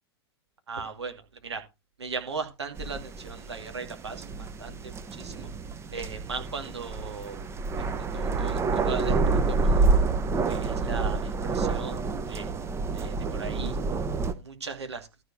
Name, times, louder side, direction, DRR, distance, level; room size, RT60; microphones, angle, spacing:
voice 1, 0.7-1.6 2.0-5.5 5.9-7.4 7.8-9.9 10.5-12.5 12.9-13.8 14.2-15.1, right 4 dB, 75° right, 2.4 m, -38 dB
sound 1, 2.8-14.3, right 4 dB, 20° right, 1.1 m, -28 dB
13.0 x 4.6 x 5.9 m
figure-of-eight pair, 95°, 14 cm